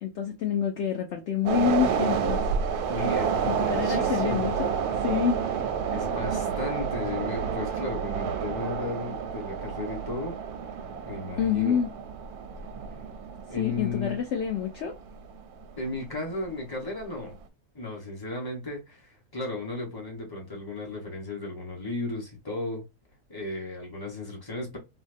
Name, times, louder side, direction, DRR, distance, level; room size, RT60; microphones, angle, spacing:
voice 1, 0.0-2.4 3.4-4.7 5.0-5.4 11.4-11.9 13.6-14.9, left 8 dB, 65° left, 0.7 m, -27 dB
sound 1, 1.5-16.0 16.4-16.5, right 7 dB, 90° right, 1.1 m, -30 dB
voice 2, 2.9-4.7 5.9-10.4 11.0-11.8 13.5-14.2 15.8-17.3 17.7-22.8 23.3-24.8, left 2 dB, 15° left, 1.0 m, -35 dB
3.4 x 2.2 x 2.5 m
omnidirectional pair, 1.6 m